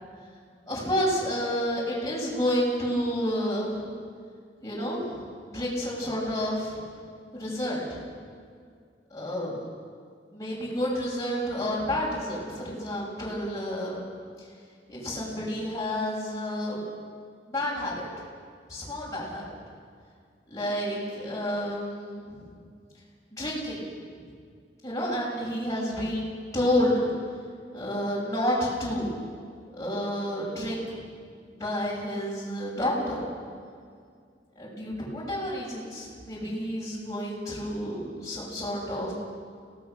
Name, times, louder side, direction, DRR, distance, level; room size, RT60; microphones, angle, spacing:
voice 1, 0.7-3.8 4.6-5.2 5.5-6.8 7.3-8.0 9.1-9.6 10.3-14.1 14.9-16.8 17.5-18.1 18.7-19.4 20.5-22.5 23.3-23.8 24.8-27.1 27.7-29.1 29.7-31.0 31.4-33.2 34.6-39.1, equal, 20° left, -7 dB, 7.1 m, -30 dB
30.0 x 18.5 x 6.8 m, 2.1 s
head